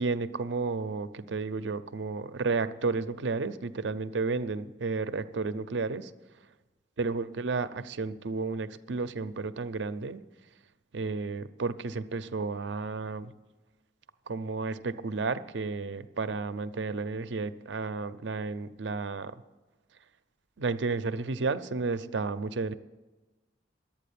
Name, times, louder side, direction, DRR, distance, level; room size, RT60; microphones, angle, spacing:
voice 1, 0.0-6.1 7.0-10.2 10.9-13.3 14.3-19.3 20.6-22.7, right 4 dB, 80° right, 13 dB, 0.6 m, -32 dB
11.5 x 8.8 x 8.5 m, 1.2 s
head